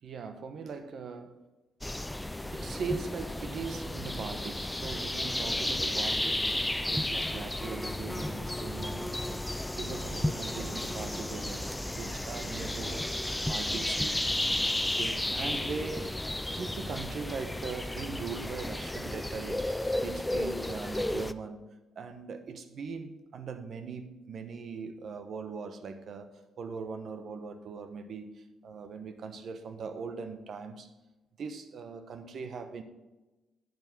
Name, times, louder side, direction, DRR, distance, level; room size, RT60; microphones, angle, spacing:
voice 1, 0.0-1.4 2.5-14.2 14.8-21.6 22.0-30.9 31.4-32.8, right 5 dB, 60° right, 9 dB, 1.0 m, -40 dB
sound 1, 1.8-21.3, left 1 dB, 10° left, 0.4 m, -33 dB
10.5 x 5.3 x 6.1 m, 1.1 s
cardioid pair, 90°, 0 cm